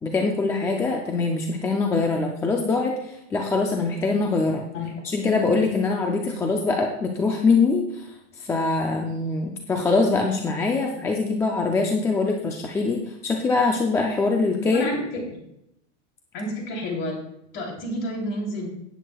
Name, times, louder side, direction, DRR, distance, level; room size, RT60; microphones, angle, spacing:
voice 1, 0.0-4.7 5.0-14.8, left 3 dB, 10° left, 2 dB, 0.4 m, -23 dB
voice 2, 14.7-15.0 16.3-17.2 17.5-18.7, left 1 dB, 35° left, 0 dB, 3.3 m, -29 dB
17.5 x 8.2 x 2.3 m, 0.79 s
supercardioid pair, 160°, 36 cm